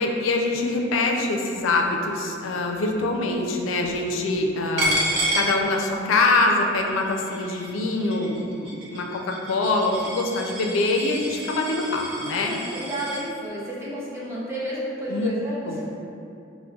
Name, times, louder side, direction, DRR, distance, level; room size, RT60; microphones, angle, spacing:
voice 1, 0.0-12.6 15.1-15.3 15.7-15.8, left 2 dB, 85° left, 2 dB, 0.4 m, -24 dB
Coin (dropping), 4.8-6.3 6.6-13.2, right 1 dB, 75° right, 0.6 m, -30 dB
voice 2, 12.2-15.9, right 1 dB, 15° right, -8 dB, 0.5 m, -32 dB
5.1 x 2.0 x 2.3 m, 2.7 s
head